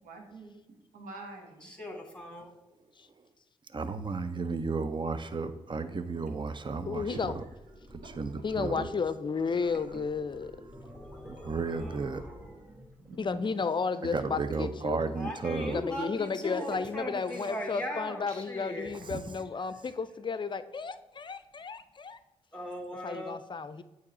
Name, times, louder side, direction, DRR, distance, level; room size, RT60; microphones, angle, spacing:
voice 1, 0.0-1.7 7.1-7.2 7.7-7.8 13.0-14.0 14.7-14.8 16.4-16.5 18.3-18.7 19.7-19.8, right 3 dB, 80° right, 3 dB, 1.2 m, -47 dB
voice 2, 1.6-2.5 11.7-12.0 15.2-18.9 22.5-23.4, left 1 dB, 5° left, 2 dB, 1.8 m, -38 dB
voice 3, 3.7-7.4 7.9-8.9 11.3-12.2 14.0-15.8 19.0-19.2, right 4 dB, 35° right, 11 dB, 0.6 m, -33 dB
sound 1, 5.2-13.3, equal, 10° right, 1.5 m, -50 dB
voice 4, 6.9-7.3 8.4-10.5 13.2-15.0 15.7-22.2 23.0-23.8, left 5 dB, 35° left, 13 dB, 0.5 m, -33 dB
8.4 x 3.0 x 4.2 m, 1.1 s
supercardioid pair, 45°, 14 cm